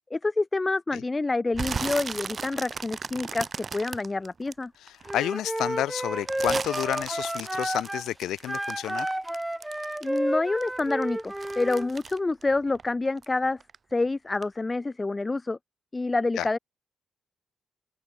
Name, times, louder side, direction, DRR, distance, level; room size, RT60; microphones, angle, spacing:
voice 1, 0.1-4.7 10.0-13.6 13.9-15.6 15.9-16.6, left 3 dB, 20° left, 2.2 m, -27 dB
sound 1, 1.5-5.1 5.6-10.3 10.6-13.3 13.6-14.0 14.4-14.5, right 5 dB, 35° right, 4.4 m, -36 dB
voice 2, 4.8-9.1 16.4-16.5, left 13 dB, 90° left, 1.5 m, -30 dB
Wind instrument woodwind instrument, 5.1-8.1 8.5-11.9, right 1 dB, 5° right, 0.5 m, -31 dB
open air
cardioid pair, 125°, 0 cm